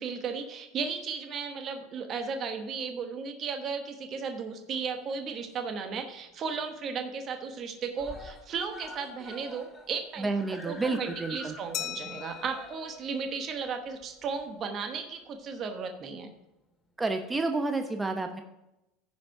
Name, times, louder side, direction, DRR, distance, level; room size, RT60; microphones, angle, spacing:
voice 1, 0.0-10.3 10.6-16.3, right 5 dB, 40° right, 5 dB, 1.1 m, -35 dB
Screaming, 5.1-6.0 6.3-6.4 6.7-6.8 7.1-7.6 7.9-14.8 15.6-15.7, left 2 dB, 15° left, 2.2 m, -48 dB
voice 2, 10.2-11.5 17.0-18.4, right 3 dB, 15° right, 6 dB, 0.8 m, -30 dB
Glass, 11.7-14.2, left 12 dB, 50° left, 0.4 m, -41 dB
14.5 x 5.0 x 4.8 m, 0.94 s
hypercardioid pair, 95°, 0 cm